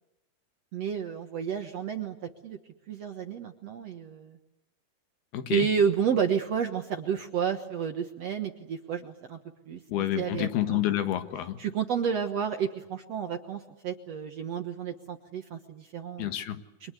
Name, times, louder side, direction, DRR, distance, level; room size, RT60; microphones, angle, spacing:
voice 1, 0.7-2.2 2.4-2.6 2.9-4.4 5.5-9.4 9.7-9.8 10.2-10.8 11.6-16.3 16.8-16.9, right 7 dB, 60° right, 6 dB, 1.8 m, -30 dB
voice 2, 5.3-5.7 9.9-11.6 16.2-16.6, left 12 dB, 80° left, 9 dB, 3.5 m, -29 dB
29.0 x 25.0 x 8.3 m, 0.93 s
omnidirectional pair, 4.4 m